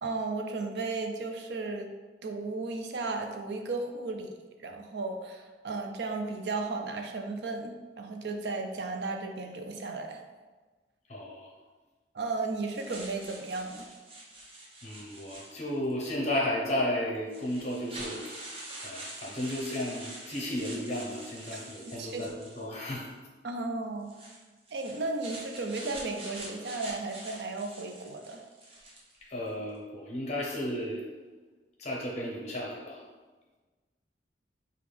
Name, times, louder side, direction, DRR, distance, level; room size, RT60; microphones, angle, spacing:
voice 1, 0.0-1.9 2.2-4.3 4.6-10.2 12.1-13.8 22.0-22.3 23.4-24.2 24.7-28.4, right 3 dB, 70° right, 4 dB, 0.5 m, -34 dB
voice 2, 11.1-11.5 14.8-23.1 29.2-31.1 31.8-33.0, left 1 dB, 40° left, -2 dB, 0.6 m, -34 dB
sound 1, 12.7-15.9 16.7-16.8 17.3-23.1 24.0-29.2, right 1 dB, 35° right, 0.8 m, -45 dB
5.1 x 2.4 x 3.2 m, 1.3 s
head